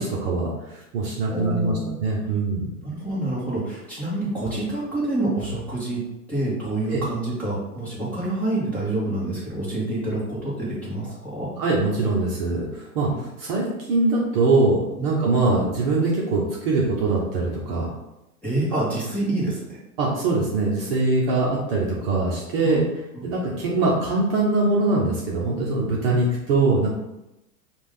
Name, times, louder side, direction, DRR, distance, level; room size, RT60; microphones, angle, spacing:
voice 1, 0.0-2.7 6.9-7.0 11.6-13.1 13.4-17.9 20.0-22.8 23.2-26.9, right 3 dB, 40° right, -4 dB, 0.9 m, -22 dB
voice 2, 1.3-2.0 2.8-6.0 6.3-11.5 13.1-13.2 15.0-15.1 18.4-19.8 22.6-22.8 23.1-23.3 26.1-26.2, right 2 dB, 5° left, -10 dB, 1.2 m, -27 dB
4.9 x 2.5 x 3.7 m, 0.93 s
supercardioid pair, 155°, 46 cm